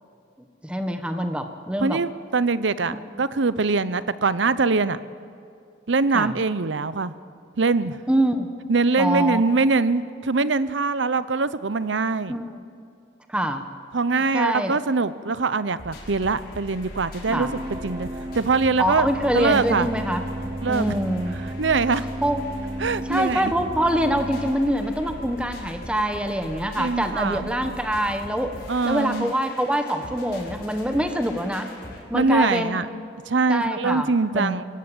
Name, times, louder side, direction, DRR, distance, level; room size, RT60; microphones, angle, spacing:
voice 1, 0.6-2.0 2.9-3.0 6.1-6.3 8.1-8.5 9.0-9.6 12.3-12.6 13.3-13.6 14.3-14.8 17.3-17.5 18.8-20.3 20.7-21.3 22.2-22.5 23.1-28.5 28.8-31.7 32.1-32.9 33.5-34.5, equal, 5° right, 6 dB, 1.3 m, -25 dB
voice 2, 1.8-5.0 5.9-7.1 7.6-8.0 8.7-12.4 13.9-18.1 18.3-19.1 19.3-19.9 20.6-20.9 21.6-22.0 22.8-23.5 26.8-27.5 28.7-29.3 32.1-32.9 33.3-34.6, right 4 dB, 75° right, 15 dB, 0.8 m, -23 dB
sound 1, 15.8-32.0, left 1 dB, 50° left, 5.5 m, -40 dB
sound 2, 17.3-24.5, right 1 dB, 25° right, 0.7 m, -34 dB
26.0 x 15.0 x 8.9 m, 2.4 s
head